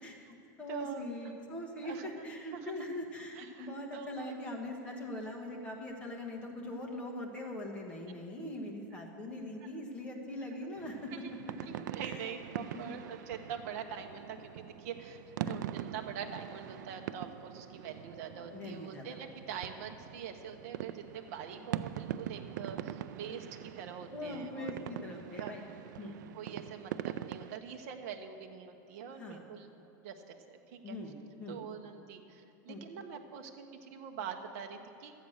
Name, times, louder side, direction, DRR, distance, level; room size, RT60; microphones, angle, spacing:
voice 1, 0.0-11.1 12.0-12.2 12.6-13.0 15.4-15.6 18.5-19.2 24.1-25.6 26.0-26.2 29.1-29.4 30.8-31.1 31.4-31.6 32.7-32.8, left 1 dB, 10° left, 0 dB, 1.1 m, -42 dB
voice 2, 0.7-1.1 1.8-2.1 2.5-2.7 3.3-4.3 9.6-9.7 11.1-11.2 11.7-14.4 14.8-15.2 15.5-25.1 25.4-25.5 26.3-29.7 30.0-31.0 31.5-35.1, right 7 dB, 50° right, 4 dB, 0.8 m, -44 dB
sound 1, 10.7-27.6, right 12 dB, 80° right, 0.4 m, -43 dB
12.0 x 8.2 x 6.4 m, 2.9 s
supercardioid pair, 170°, 10 cm